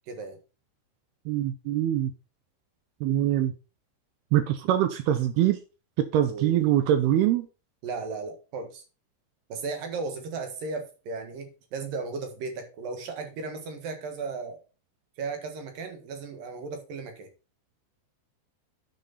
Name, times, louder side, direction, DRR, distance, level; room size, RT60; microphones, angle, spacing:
voice 1, 0.1-0.4 6.3-6.7 7.0-7.1 7.8-8.8 9.5-14.6 15.2-17.3, right 4 dB, 60° right, 2.7 m, -35 dB
voice 2, 1.3-2.1 3.0-3.5 4.3-5.6 6.0-7.5, right 12 dB, 85° right, 2.3 m, -23 dB
9.2 x 7.4 x 4.1 m
omnidirectional pair, 5.5 m